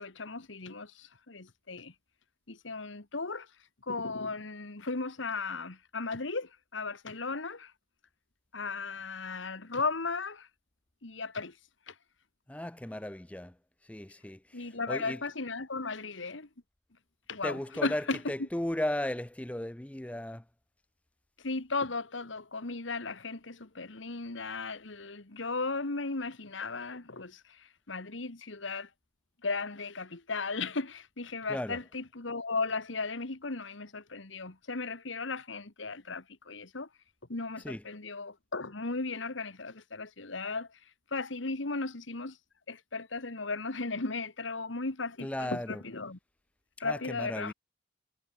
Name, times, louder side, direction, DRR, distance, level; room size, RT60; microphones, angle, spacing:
voice 1, 0.0-1.9 2.5-3.5 3.8-7.7 8.5-10.5 11.0-11.6 11.9-12.0 14.5-16.5 17.3-18.2 21.4-28.9 29.4-36.9 37.3-40.8 41.1-42.4 42.7-46.2 46.8-47.5, left 3 dB, 80° left, 1.8 m, -36 dB
voice 2, 12.5-13.6 13.8-15.2 17.4-20.4 31.5-31.8 37.6-37.8 45.2-45.8 46.8-47.5, left 1 dB, 5° left, 0.5 m, -36 dB
head